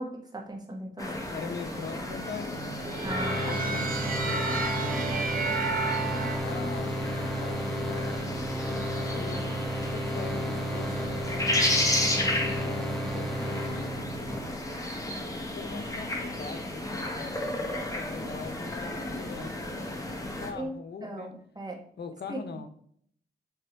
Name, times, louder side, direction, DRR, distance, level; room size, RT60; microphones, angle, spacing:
voice 1, 0.0-1.1 3.0-3.6 12.0-12.4 20.5-20.8 21.0-21.8 22.3-22.4, right 1 dB, 20° right, 0 dB, 1.8 m, -37 dB
voice 2, 1.0-2.9 3.4-9.5 9.9-11.9 12.5-14.3 15.3-21.3 22.0-22.7, left 5 dB, 70° left, 8 dB, 0.9 m, -42 dB
sound 1, 1.0-20.5, left 1 dB, 20° left, 1.6 m, -33 dB
sound 2, 1.7-6.4, right 5 dB, 50° right, 1.0 m, -33 dB
sound 3, 3.1-14.4, equal, ahead, 1.1 m, -33 dB
8.4 x 3.6 x 4.6 m, 0.62 s
cardioid pair, 85°, 18 cm